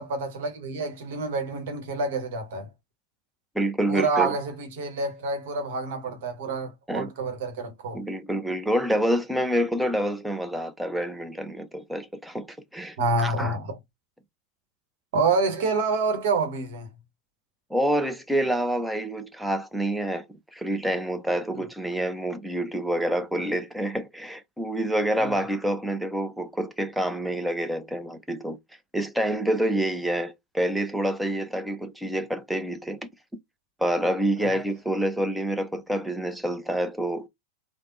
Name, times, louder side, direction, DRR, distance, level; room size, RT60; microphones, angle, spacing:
voice 1, 0.0-2.7 3.9-8.0 13.0-13.8 15.1-16.9 25.2-25.3 34.4-34.5, right 3 dB, 55° right, 1.0 m, -27 dB
voice 2, 3.5-4.3 6.9-7.1 7.9-12.5 12.7-13.5 17.7-20.3 20.5-28.6 28.9-33.0 33.8-37.3, right 1 dB, 5° right, 0.5 m, -27 dB
3.3 x 2.0 x 2.5 m
figure-of-eight pair, 90°, 0 cm